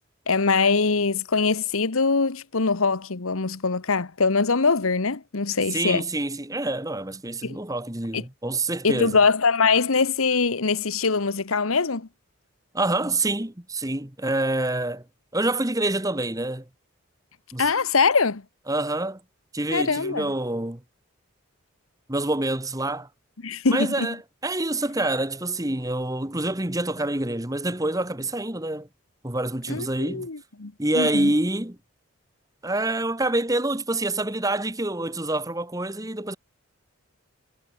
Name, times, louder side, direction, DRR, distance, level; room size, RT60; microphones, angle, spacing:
voice 1, 0.3-6.0 7.4-7.6 8.1-8.2 8.8-12.1 17.6-18.4 19.7-20.3 23.4-24.1 29.7-31.3, left 4 dB, 85° left, 1.2 m, -23 dB
voice 2, 5.7-9.2 12.7-15.0 15.3-16.6 17.5-17.6 18.7-19.2 19.5-20.8 22.1-23.1 23.7-24.2 24.4-28.9 29.2-30.3 30.8-31.8 32.6-36.4, right 2 dB, 15° right, 1.6 m, -26 dB
head